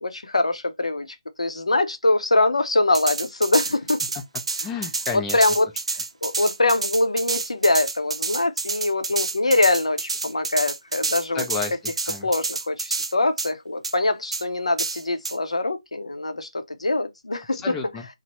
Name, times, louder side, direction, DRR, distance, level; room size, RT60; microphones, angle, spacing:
voice 1, 0.0-1.1 1.4-4.0 5.1-5.7 6.2-11.4 12.2-17.7, left 2 dB, 80° left, 0.5 m, -23 dB
sound 1, 2.9-13.1 13.4-13.5 13.8-13.9 14.3-14.4 14.8-15.4, right 3 dB, 65° right, 0.5 m, -28 dB
voice 2, 4.6-5.4 11.3-11.8 12.1-12.3 17.5-18.1, left 5 dB, 10° left, 0.4 m, -31 dB
3.0 x 2.0 x 2.9 m
figure-of-eight pair, 145°, 3 cm